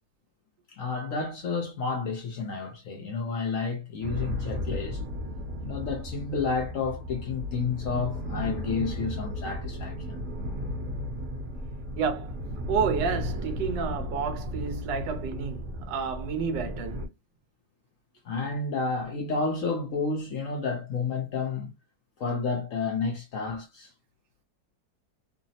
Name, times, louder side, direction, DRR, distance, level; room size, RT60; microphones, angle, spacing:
voice 1, 0.7-5.0 5.6-10.2 18.2-21.7 22.2-23.9, left 4 dB, 65° left, 0.8 m, -30 dB
sound 1, 4.0-17.1, equal, 50° right, 1.1 m, -35 dB
voice 2, 12.0-12.4 12.7-17.0, right 6 dB, 75° right, 1.3 m, -30 dB
3.2 x 2.0 x 2.6 m
omnidirectional pair, 2.0 m